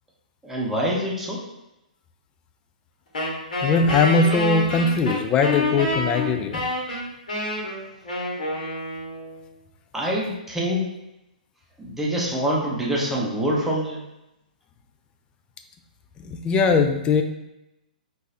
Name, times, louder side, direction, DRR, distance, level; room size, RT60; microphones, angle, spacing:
voice 1, 0.4-1.4 9.9-10.9 11.8-14.0, equal, 5° right, -4 dB, 0.7 m, -25 dB
Wind instrument woodwind instrument, 3.1-9.4, left 1 dB, 70° left, 1.4 m, -27 dB
voice 2, 3.6-6.6 16.3-17.2, left 4 dB, 20° left, 6 dB, 0.3 m, -20 dB
3.8 x 2.6 x 2.7 m, 0.91 s
hypercardioid pair, 125°, 5 cm